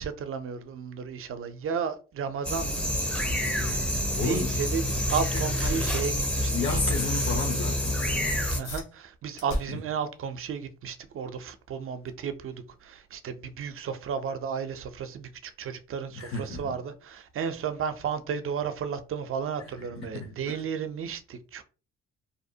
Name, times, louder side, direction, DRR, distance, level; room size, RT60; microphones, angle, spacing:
voice 1, 0.0-2.8 3.0-3.3 4.2-6.8 8.5-21.6, right 6 dB, 50° right, 0.5 m, -33 dB
sound 1, 2.4-8.6, equal, 5° left, 0.5 m, -28 dB
voice 2, 4.2-4.6 5.0-5.1 5.5-6.1 6.5-8.5 9.7-9.8 16.2-16.7 19.8-20.6, left 4 dB, 50° left, 0.7 m, -33 dB
sound 2, 8.5-18.5, equal, 85° left, 0.9 m, -44 dB
2.7 x 2.0 x 2.7 m
supercardioid pair, 65°, 29 cm